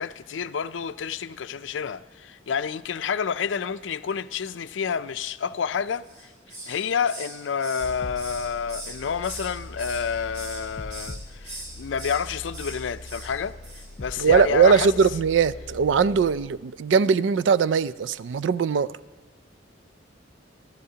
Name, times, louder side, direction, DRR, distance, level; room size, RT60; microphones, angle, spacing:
voice 1, 0.0-6.0 6.7-13.5 14.0-14.9, left 6 dB, 80° left, 0.4 m, -29 dB
Hiss, 6.0-6.8 7.1-9.5 9.8-10.6 10.9-11.2 11.4-12.2 12.5-12.8 13.0-13.3 13.6-13.9 14.1-14.3, right 1 dB, 45° right, 4.4 m, -40 dB
sound 1, 7.8-16.5, left 1 dB, 35° left, 0.8 m, -41 dB
voice 2, 14.2-19.0, right 6 dB, 75° right, 0.4 m, -20 dB
26.0 x 13.5 x 2.8 m
head